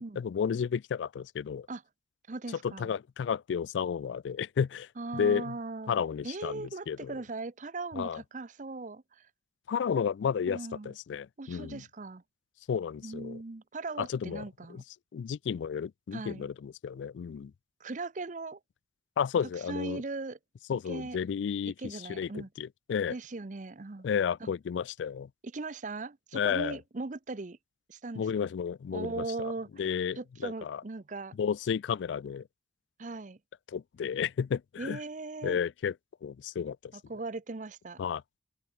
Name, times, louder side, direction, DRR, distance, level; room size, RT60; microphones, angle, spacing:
voice 1, 0.2-1.7 2.6-4.9 5.1-5.5 5.9-7.1 8.0-8.2 9.7-11.8 12.7-13.4 14.0-14.4 14.7-14.8 15.1-17.5 19.2-20.0 20.7-23.1 24.0-25.3 26.3-26.8 28.2-29.3 29.8-30.8 31.4-32.4 33.7-35.0 35.4-35.9 36.2-36.9 38.0-38.2, left 7 dB, 80° left, 0.3 m, -32 dB
voice 2, 2.3-2.9 5.0-5.9 6.2-9.3 10.5-10.9 11.4-12.2 13.0-14.8 16.1-16.4 17.8-18.6 19.7-20.4 20.9-21.2 21.8-22.5 23.1-24.1 24.4-24.5 25.4-27.6 27.9-28.2 28.9-29.9 30.2-31.3 33.0-33.4 34.8-35.6 36.9-38.0, right 3 dB, 45° right, 0.7 m, -39 dB
open air
head